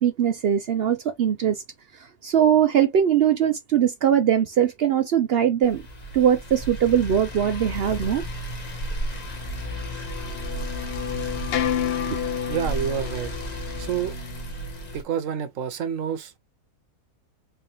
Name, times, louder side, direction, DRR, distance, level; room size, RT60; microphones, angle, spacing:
voice 1, 0.0-1.6 2.2-5.8 6.1-8.2 12.1-12.2, right 9 dB, 80° right, 0.5 m, -21 dB
sound 1, 5.6-15.0, equal, 30° left, 0.9 m, -33 dB
sound 2, 9.2-15.0, left 10 dB, 70° left, 0.5 m, -31 dB
voice 2, 12.5-13.3 13.8-14.1 14.9-16.4, right 8 dB, 60° right, 1.1 m, -28 dB
3.6 x 3.2 x 2.9 m
omnidirectional pair, 1.7 m